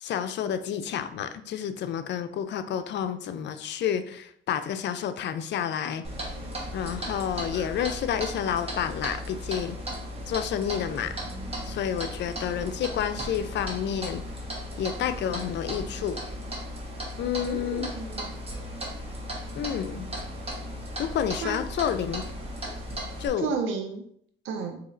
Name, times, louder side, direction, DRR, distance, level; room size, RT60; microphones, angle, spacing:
voice 1, 0.0-6.0 6.7-9.8 10.3-11.1 11.6-14.2 14.8-16.2 17.2-17.9 19.5-20.1 21.0-22.2 23.2-23.5, left 9 dB, 65° left, 10 dB, 0.4 m, -30 dB
Clock, 6.0-23.3, equal, 30° right, 1.1 m, -36 dB
voice 2, 17.5-18.3 21.4-21.6 23.4-24.0 24.4-24.8, right 5 dB, 80° right, 4 dB, 0.5 m, -32 dB
4.1 x 2.8 x 2.5 m, 0.64 s
cardioid pair, 90°, 20 cm